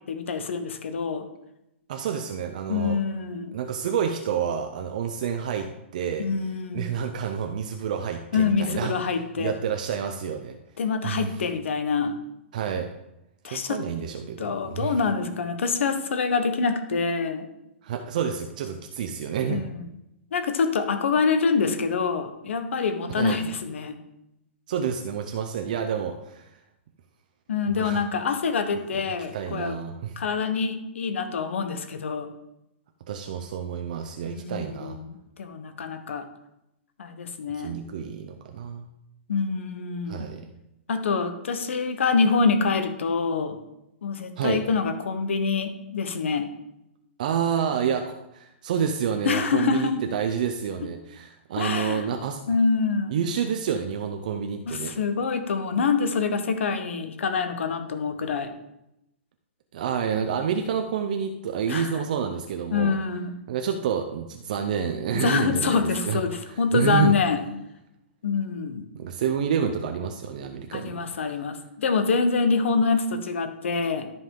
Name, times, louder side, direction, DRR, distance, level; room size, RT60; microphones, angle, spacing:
voice 1, 0.1-1.3 2.7-3.5 6.2-6.9 8.3-9.5 10.8-12.2 13.4-13.8 14.4-17.5 19.5-19.8 20.3-24.0 27.5-29.8 30.2-32.3 34.2-36.2 37.0-37.8 39.3-40.2 40.9-43.6 44.0-46.5 49.2-49.9 51.6-52.0 52.5-53.1 54.7-58.5 61.7-61.9 62.7-63.3 65.1-67.4 68.2-68.9 70.7-74.1, left 5 dB, 75° left, 8 dB, 1.2 m, -26 dB
voice 2, 1.9-3.0 3.5-6.3 6.7-10.6 11.0-11.4 12.5-12.9 13.4-15.0 17.8-19.6 23.2-23.4 24.7-26.6 27.8-28.0 29.3-30.1 33.1-35.0 37.6-38.8 40.1-40.5 44.4-44.6 47.2-52.4 53.1-54.9 59.7-62.9 63.5-66.2 66.5-67.1 68.9-71.1, right 7 dB, 40° right, 5 dB, 0.6 m, -29 dB
12.5 x 5.5 x 3.8 m, 0.87 s
hypercardioid pair, 180°, 7 cm